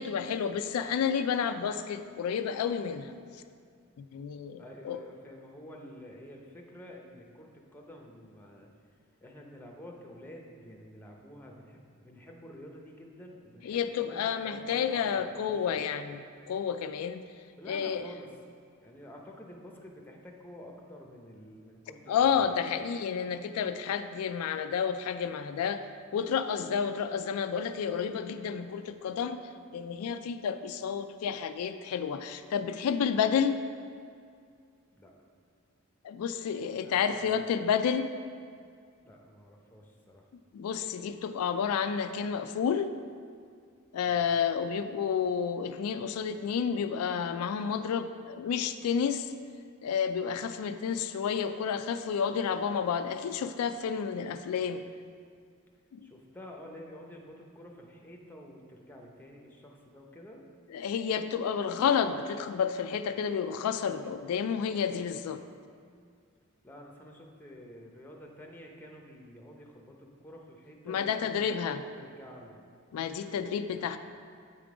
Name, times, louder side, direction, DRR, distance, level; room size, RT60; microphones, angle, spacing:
voice 1, 0.0-3.2 4.0-5.0 13.6-17.2 17.7-18.0 22.1-25.8 26.1-33.6 36.0-38.1 40.5-42.9 43.9-49.3 49.8-54.8 55.9-56.1 60.7-65.4 70.9-71.8 72.9-74.0, left 7 dB, 85° left, 9 dB, 0.3 m, -30 dB
voice 2, 4.6-8.7 9.2-15.8 17.5-18.4 18.8-22.6 34.9-35.1 36.8-37.5 39.0-40.3 44.0-44.3 56.0-60.4 66.6-72.6, left 1 dB, 10° left, 0 dB, 0.7 m, -49 dB
8.4 x 3.7 x 4.8 m, 2.2 s
head